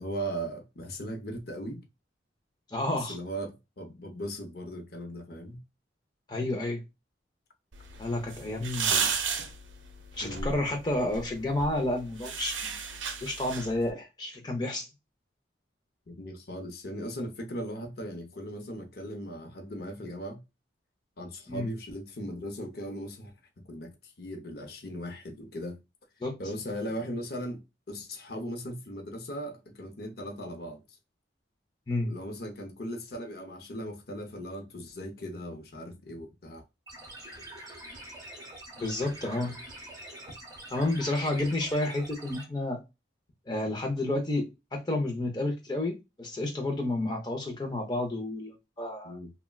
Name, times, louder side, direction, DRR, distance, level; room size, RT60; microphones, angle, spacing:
voice 1, 0.0-1.9 2.9-5.6 8.8-9.1 10.2-10.5 16.1-20.4 21.2-25.8 26.4-30.8 32.0-36.6 49.0-49.3, equal, 55° left, 0.7 m, -38 dB
voice 2, 2.7-3.2 6.3-6.8 8.0-9.1 10.2-12.8 13.2-14.9 21.5-21.7 26.2-26.4 31.9-32.1 38.8-39.5 40.7-42.8 43.5-49.2, left 1 dB, 20° left, 0.5 m, -30 dB
sound 1, 7.7-13.9, right 5 dB, 85° right, 0.5 m, -34 dB
sound 2, 36.9-42.4, right 1 dB, 20° right, 0.8 m, -45 dB
3.4 x 2.1 x 2.2 m
head